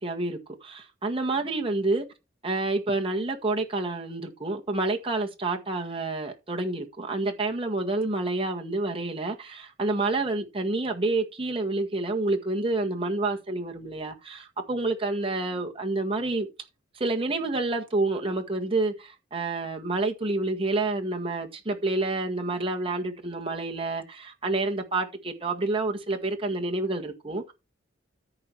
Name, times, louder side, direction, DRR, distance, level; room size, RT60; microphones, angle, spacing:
voice 1, 0.0-2.1 2.4-16.5 17.0-27.5, right 2 dB, 30° right, 1.8 m, -28 dB
13.5 x 4.9 x 4.6 m
head